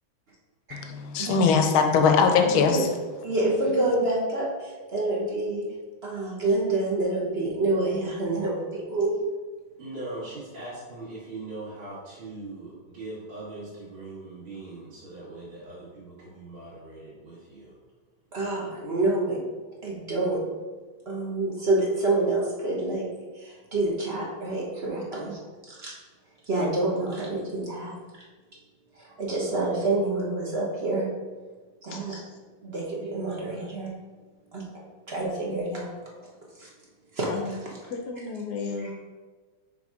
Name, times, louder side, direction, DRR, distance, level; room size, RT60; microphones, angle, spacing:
voice 1, 0.7-2.9, left 5 dB, 85° left, 1.5 m, -21 dB
voice 2, 2.5-2.9 3.2-5.6 6.0-9.2 18.3-19.4 19.8-20.4 21.1-23.1 23.3-25.9 26.4-28.2 28.9-31.1 31.8-32.2 32.6-33.9 34.5-34.7 35.1-35.9 36.6-36.7 37.1-37.3 38.8-38.9, right 2 dB, 40° right, 1.0 m, -27 dB
voice 3, 9.8-17.7, right 2 dB, 65° right, 2.6 m, -40 dB
voice 4, 31.9-32.2 37.3-37.6 37.9-38.9, left 4 dB, 65° left, 1.1 m, -34 dB
6.1 x 3.5 x 4.8 m
omnidirectional pair, 2.2 m